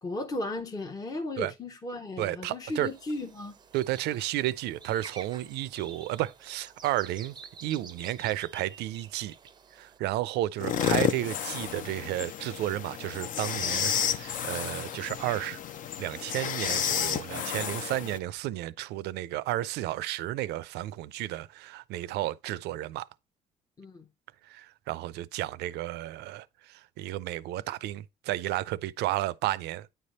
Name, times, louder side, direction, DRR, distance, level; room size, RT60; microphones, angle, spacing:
voice 1, 0.0-3.5 23.8-24.1, left 2 dB, 20° left, 0.8 m, -35 dB
voice 2, 2.2-2.9 3.7-7.4 7.6-9.3 9.8-15.6 16.0-23.1 24.5-29.9, right 15 dB, 80° right, 0.4 m, -32 dB
sound 1, 2.6-10.0, right 5 dB, 25° right, 0.5 m, -49 dB
sound 2, 10.6-18.2, left 9 dB, 50° left, 0.6 m, -31 dB
9.2 x 3.4 x 4.1 m
cardioid pair, 110°, 17 cm